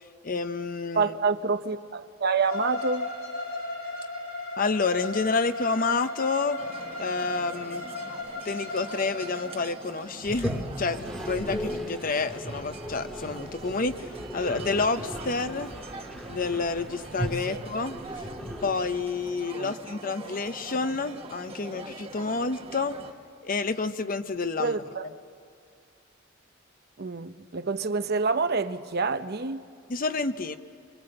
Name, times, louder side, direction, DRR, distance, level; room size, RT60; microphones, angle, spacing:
voice 1, 0.2-1.1 4.6-6.6 7.0-7.9 8.4-15.7 16.3-18.0 18.6-23.0 23.4-24.8 29.9-30.6, left 4 dB, 40° left, 0.7 m, -29 dB
voice 2, 0.9-3.1 17.5-17.6 19.5-19.7 24.6-25.0 27.0-29.6, right 4 dB, 50° right, 0.7 m, -27 dB
Bowed string instrument, 2.4-9.6, left 2 dB, 85° left, 5.9 m, -36 dB
sound 1, 6.6-23.1, right 3 dB, 30° right, 1.1 m, -44 dB
Toilet flush, 10.2-19.3, equal, 5° left, 1.6 m, -37 dB
26.5 x 24.5 x 7.8 m
head